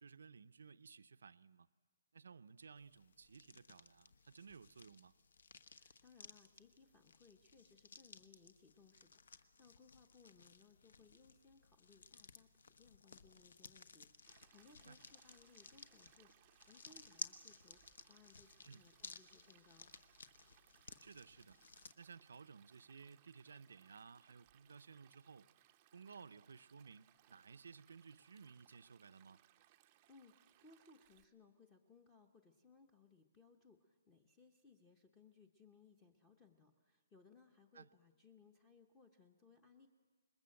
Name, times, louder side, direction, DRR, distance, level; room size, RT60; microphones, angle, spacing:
voice 1, 0.0-1.7 2.1-5.1 14.9-15.0 18.6-18.8 21.0-21.7 22.0-25.5 25.9-29.4 37.7-37.9, right 5 dB, 75° right, 13 dB, 0.7 m, -57 dB
sound 1, 2.8-21.9, left 5 dB, 65° left, 1.1 m, -57 dB
voice 2, 5.7-19.9 30.1-39.9, left 4 dB, 10° left, 6 dB, 0.8 m, -66 dB
Stream, 14.2-31.2, right 13 dB, 20° right, 0.6 m, -71 dB
26.5 x 21.0 x 7.7 m, 1.5 s
hypercardioid pair, 175°, 0 cm